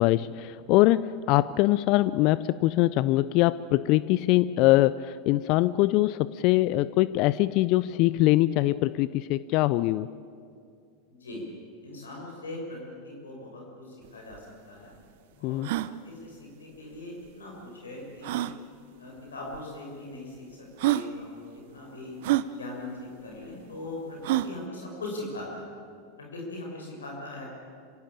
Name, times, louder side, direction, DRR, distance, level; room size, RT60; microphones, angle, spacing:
voice 1, 0.0-10.1 15.4-15.7, left 17 dB, 50° left, 17 dB, 0.5 m, -23 dB
voice 2, 11.1-11.4 11.8-13.8 14.1-14.9 15.4-15.6 16.0-18.5 19.0-22.2 22.5-25.7 26.3-27.4, left 2 dB, 80° left, -1 dB, 6.3 m, -40 dB
sound 1, 14.0-14.1 14.3-14.4 14.9-15.0 15.5-15.9 17.2-17.3 18.2-18.6 19.5-19.6 20.4-20.5 20.8-21.1 22.2-22.5 24.2-24.6, right 15 dB, 60° right, 0.7 m, -27 dB
26.0 x 16.0 x 8.8 m, 2.3 s
hypercardioid pair, 90°, 0 cm